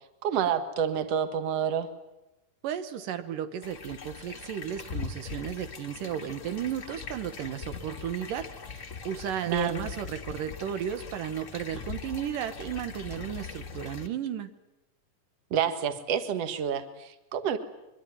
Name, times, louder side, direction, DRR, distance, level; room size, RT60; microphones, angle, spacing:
voice 1, 0.2-1.9 9.5-9.9 15.5-17.6, right 8 dB, 55° right, 9 dB, 2.5 m, -28 dB
voice 2, 2.6-14.5, right 9 dB, 85° right, 10 dB, 2.9 m, -34 dB
sound 1, 3.6-14.1, left 5 dB, 45° left, 0.9 m, -41 dB
24.0 x 24.0 x 9.5 m, 0.97 s
omnidirectional pair, 3.8 m